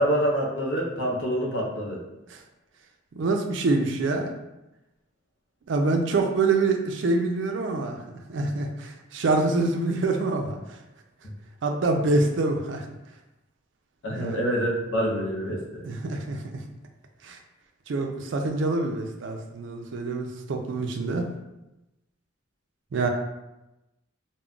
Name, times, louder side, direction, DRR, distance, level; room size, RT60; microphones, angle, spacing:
voice 1, 0.0-2.0 11.2-11.3 14.0-15.8, equal, 65° left, -1 dB, 0.6 m, -26 dB
voice 2, 3.1-4.3 5.7-10.8 11.6-12.9 14.1-14.4 15.8-16.6 17.2-17.4 17.9-21.3 22.9-23.1, right 3 dB, 65° right, 4 dB, 0.4 m, -26 dB
2.3 x 2.1 x 3.6 m, 0.96 s
head